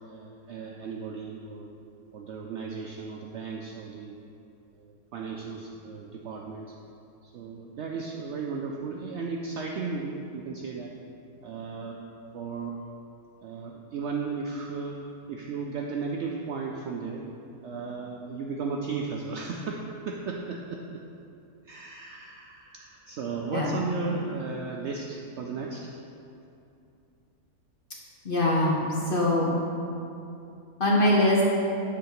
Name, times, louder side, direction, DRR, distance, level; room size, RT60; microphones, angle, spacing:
voice 1, 0.0-1.7 2.1-4.2 4.8-6.7 7.2-10.9 11.4-12.0 12.3-12.8 13.4-15.0 15.3-17.2 17.6-21.0 21.6-25.9, right 4 dB, 70° right, 0 dB, 0.7 m, -35 dB
voice 2, 28.2-29.6 30.8-31.4, left 1 dB, 45° left, -4 dB, 0.9 m, -23 dB
8.0 x 3.7 x 5.7 m, 2.7 s
omnidirectional pair, 1.6 m